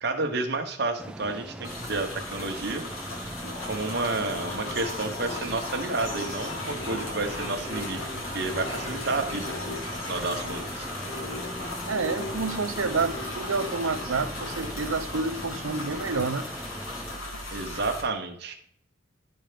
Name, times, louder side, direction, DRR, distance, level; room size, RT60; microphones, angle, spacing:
voice 1, 0.0-2.9 3.7-9.5 10.1-10.9 17.5-18.5, right 3 dB, 50° right, 4 dB, 1.2 m, -30 dB
sound 1, 1.0-17.2, right 1 dB, 5° right, 0.3 m, -41 dB
sound 2, 1.6-18.0, left 1 dB, 90° left, 2.5 m, -37 dB
sound 3, 3.4-16.6, left 3 dB, 35° left, 0.9 m, -40 dB
voice 2, 11.9-16.4, right 4 dB, 80° right, 10 dB, 0.8 m, -29 dB
12.0 x 4.4 x 5.1 m, 0.67 s
head